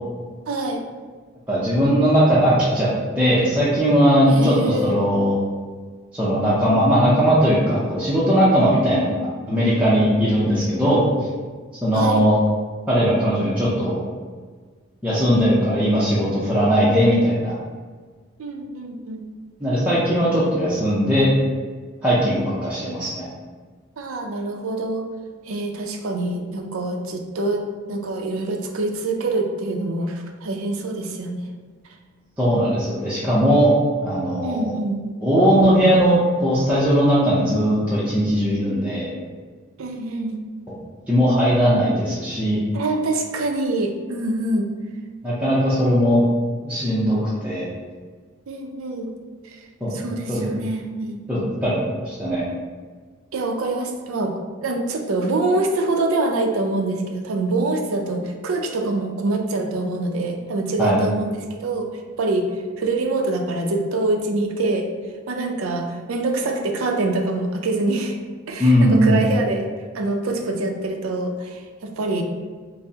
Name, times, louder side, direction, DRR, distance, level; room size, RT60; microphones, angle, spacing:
voice 1, 0.5-0.8 4.3-5.0 9.0-9.2 11.9-12.2 18.4-19.3 24.0-25.0 25.4-27.6 27.9-31.5 34.4-35.0 39.8-40.4 42.7-44.7 48.5-49.1 49.4-49.6 49.9-51.2 53.3-64.9 65.3-68.2 68.5-72.2, right 2 dB, 80° right, 3 dB, 0.5 m, -25 dB
voice 2, 1.5-2.9 3.2-4.6 4.8-5.4 6.1-9.1 9.5-11.0 11.8-12.4 12.9-14.0 15.0-17.6 19.6-21.3 22.0-23.3 32.4-33.7 34.0-34.7 35.2-39.1 41.1-42.6 45.2-46.2 46.6-47.7 49.8-50.0 50.3-50.5 51.3-52.4 60.8-61.0 68.6-69.2, equal, 5° right, -10 dB, 0.5 m, -19 dB
5.4 x 2.0 x 2.7 m, 1.5 s
head